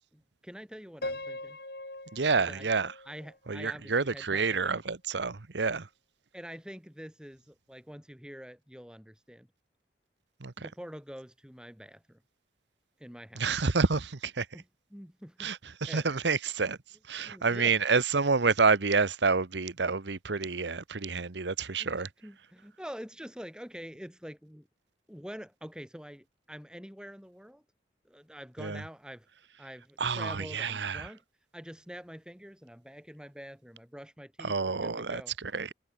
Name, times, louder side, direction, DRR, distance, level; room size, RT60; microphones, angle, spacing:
voice 1, 0.1-1.6 2.4-2.7 3.1-4.7 6.3-9.5 10.6-12.2 13.0-13.5 14.5-15.5 15.8-16.2 17.3-17.9 21.8-21.9 22.2-24.7 25.1-27.6 28.1-29.3 29.6-31.2 31.5-35.3, equal, 5° right, 3.5 m, -46 dB
Piano, 1.0-4.0, left 2 dB, 60° left, 5.8 m, -41 dB
voice 2, 2.1-2.9 3.5-5.9 10.4-10.7 13.3-14.5 15.4-16.8 17.1-22.1 28.6-28.8 30.0-31.1 34.4-35.7, right 4 dB, 85° right, 1.1 m, -28 dB
head